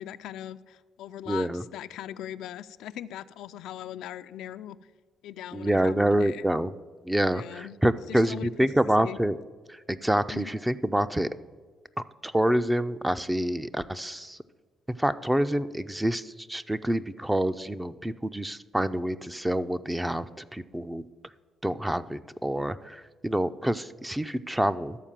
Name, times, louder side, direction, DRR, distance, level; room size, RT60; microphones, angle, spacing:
voice 1, 0.0-4.8 5.2-6.4 7.2-7.8 8.1-8.7 9.0-9.2 10.3-10.5, left 11 dB, 90° left, 12 dB, 0.3 m, -40 dB
voice 2, 1.3-1.6 5.5-6.7 7.0-9.4 9.7-11.3 12.2-14.4 14.9-21.1 21.6-25.0, right 1 dB, 10° right, 13 dB, 0.4 m, -27 dB
13.0 x 4.6 x 7.4 m, 1.5 s
cardioid pair, 90°, 0 cm